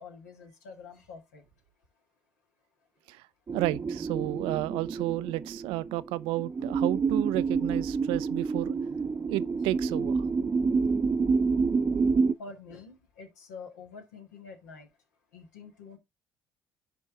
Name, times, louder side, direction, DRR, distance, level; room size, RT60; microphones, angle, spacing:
voice 1, 0.0-1.4 12.4-14.9 15.3-16.0, left 4 dB, 90° left, 2.0 m, -46 dB
sound 1, 3.5-12.3, right 4 dB, 35° right, 0.7 m, -28 dB
voice 2, 3.5-8.7 9.3-10.3, right 18 dB, 75° right, 0.4 m, -32 dB
10.5 x 4.5 x 3.7 m
hypercardioid pair, 55°, 9 cm